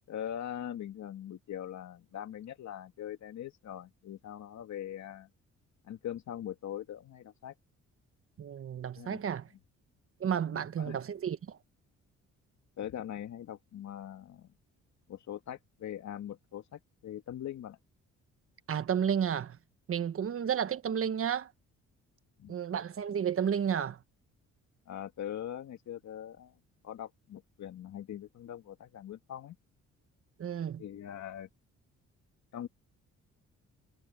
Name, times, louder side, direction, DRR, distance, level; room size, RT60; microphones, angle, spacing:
voice 1, 0.1-5.3 5.8-7.5 9.0-9.3 10.5-11.0 12.8-14.5 15.1-17.8 22.4-22.5 24.9-26.5 26.8-29.6 30.8-31.5 32.5-32.7, left 10 dB, 65° left, 2.6 m, -42 dB
voice 2, 8.4-9.5 10.2-11.6 18.7-19.6 19.9-21.5 22.5-24.0 30.4-30.8, right 8 dB, 45° right, 1.3 m, -32 dB
cardioid pair, 90°, 30 cm